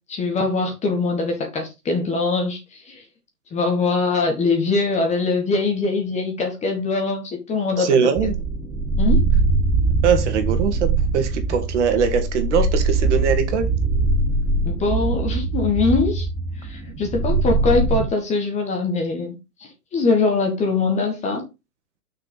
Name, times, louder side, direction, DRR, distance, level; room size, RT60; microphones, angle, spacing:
voice 1, 0.1-3.0 3.5-8.0 9.0-9.3 14.6-16.3 16.6-21.4, left 3 dB, 15° left, 1.6 m, -22 dB
voice 2, 7.8-8.3 10.0-10.9 11.1-13.7, right 6 dB, 45° right, 2.1 m, -21 dB
sound 1, 8.2-18.1, right 3 dB, 5° right, 0.9 m, -22 dB
6.2 x 5.8 x 5.0 m
figure-of-eight pair, 125°, 47 cm